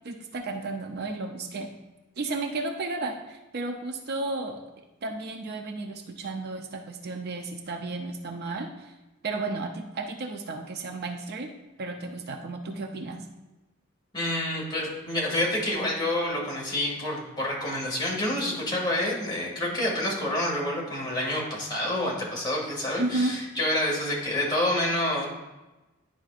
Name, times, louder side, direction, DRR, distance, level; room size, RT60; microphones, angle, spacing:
voice 1, 0.0-1.7 2.2-4.6 5.0-8.9 9.2-11.5 11.8-13.3 23.0-23.4, right 2 dB, 50° right, 4 dB, 0.5 m, -33 dB
voice 2, 14.1-25.3, left 1 dB, 20° left, -4 dB, 2.1 m, -28 dB
10.5 x 5.0 x 2.4 m, 1.1 s
head